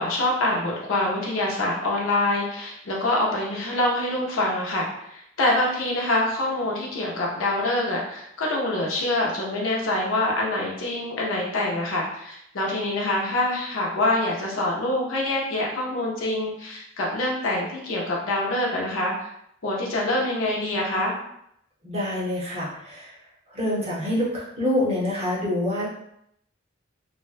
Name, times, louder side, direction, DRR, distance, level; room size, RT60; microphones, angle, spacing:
voice 1, 0.0-19.1 19.6-21.1, left 1 dB, 75° left, -3 dB, 0.6 m, -25 dB
voice 2, 21.8-23.1 23.5-25.9, left 1 dB, 30° right, -7 dB, 0.8 m, -26 dB
2.5 x 2.1 x 2.4 m, 0.75 s
head